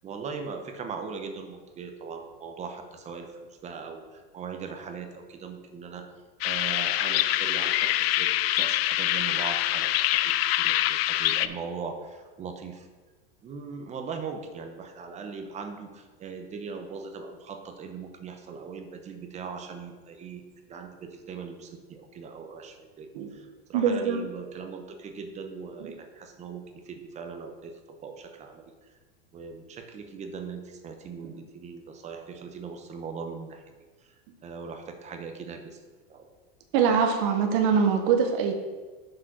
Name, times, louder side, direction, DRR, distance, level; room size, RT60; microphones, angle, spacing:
voice 1, 0.0-6.1 6.4-12.9 13.4-20.4 20.7-29.0 29.3-33.7 34.0-34.1 34.4-35.8 36.1-36.3, right 5 dB, 20° right, 6 dB, 0.8 m, -40 dB
sound 1, 6.4-11.5, left 14 dB, 80° left, 0.5 m, -25 dB
voice 2, 23.7-24.2 31.2-31.3 36.7-38.5, right 6 dB, 60° right, 4 dB, 1.1 m, -23 dB
6.2 x 4.9 x 6.2 m, 1.3 s
supercardioid pair, 140°, 30 cm